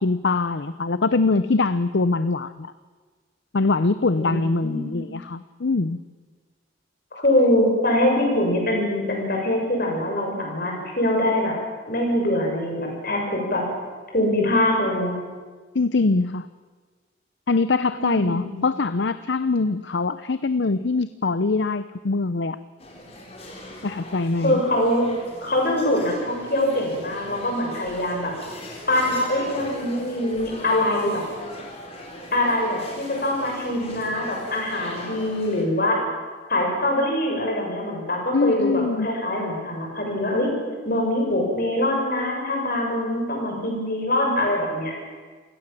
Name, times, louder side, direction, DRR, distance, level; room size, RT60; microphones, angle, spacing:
voice 1, 0.0-2.7 3.5-6.0 15.7-16.5 17.5-22.6 23.8-24.6 38.3-39.1, left 3 dB, 65° left, 14 dB, 0.6 m, -23 dB
voice 2, 4.6-5.1 7.1-11.5 11.9-13.6 14.1-15.2 17.9-18.7 24.4-25.1 25.4-28.3 28.9-31.2 32.3-36.0 36.5-40.5 40.8-44.9, left 1 dB, 50° left, 0 dB, 7.0 m, -23 dB
sound 1, 22.8-35.6, left 1 dB, 30° left, 4.2 m, -40 dB
28.0 x 17.5 x 7.5 m, 1.4 s
head